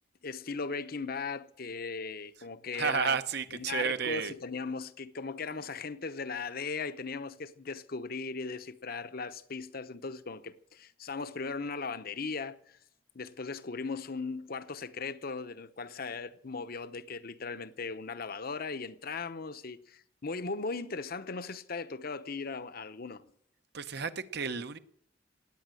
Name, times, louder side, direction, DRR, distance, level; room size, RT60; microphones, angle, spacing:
voice 1, 0.2-3.2 3.5-12.8 13.1-23.3, left 4 dB, 55° left, 0.9 m, -38 dB
voice 2, 2.7-4.3 23.7-24.8, right 6 dB, 60° right, 0.9 m, -32 dB
18.0 x 9.2 x 7.8 m
head